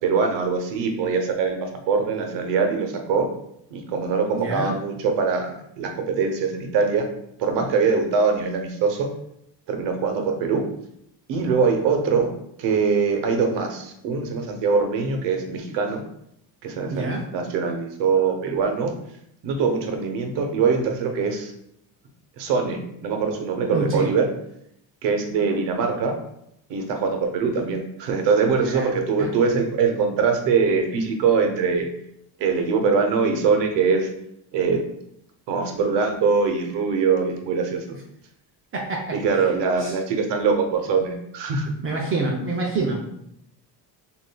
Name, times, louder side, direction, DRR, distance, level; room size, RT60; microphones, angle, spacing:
voice 1, 0.0-3.3 3.7-5.5 5.8-7.1 7.4-9.1 9.7-10.6 11.3-12.3 12.6-16.0 16.6-18.9 19.4-21.5 22.4-24.3 25.0-26.2 26.7-31.9 32.4-34.1 34.5-34.8 35.5-38.0 39.1-41.7, right 5 dB, 85° right, 4 dB, 0.8 m, -23 dB
voice 2, 4.3-4.7 16.9-17.2 23.7-24.1 28.6-28.9 29.2-29.3 38.7-39.4 39.8-39.9 41.8-43.1, right 3 dB, 30° right, -1 dB, 0.5 m, -27 dB
6.6 x 2.5 x 2.2 m, 0.77 s
cardioid pair, 165°, 41 cm